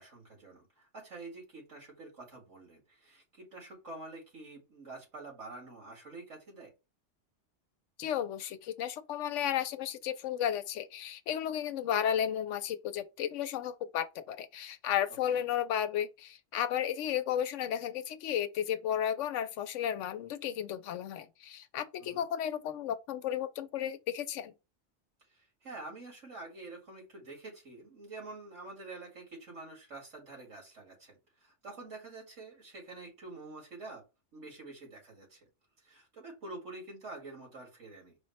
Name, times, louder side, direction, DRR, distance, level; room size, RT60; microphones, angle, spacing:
voice 1, 0.0-6.7 15.3-15.4 22.0-22.3 25.3-34.0 34.3-35.5 35.8-38.2, right 2 dB, 85° right, 2.5 m, -47 dB
voice 2, 8.0-24.5, left 10 dB, 80° left, 0.9 m, -33 dB
4.9 x 2.1 x 4.1 m
omnidirectional pair, 1.2 m